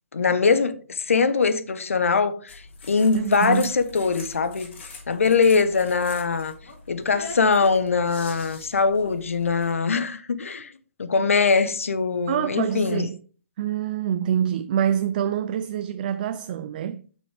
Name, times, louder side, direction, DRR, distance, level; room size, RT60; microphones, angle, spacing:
voice 1, 0.1-4.7 5.1-6.5 6.9-10.7 11.0-13.0, left 4 dB, 90° left, 1.0 m, -22 dB
sound 1, 2.5-9.7, left 3 dB, 60° left, 3.3 m, -42 dB
voice 2, 3.1-3.7 12.3-13.2 13.6-17.0, right 9 dB, 40° right, 0.4 m, -26 dB
8.8 x 6.1 x 3.4 m
hypercardioid pair, 155°, 7 cm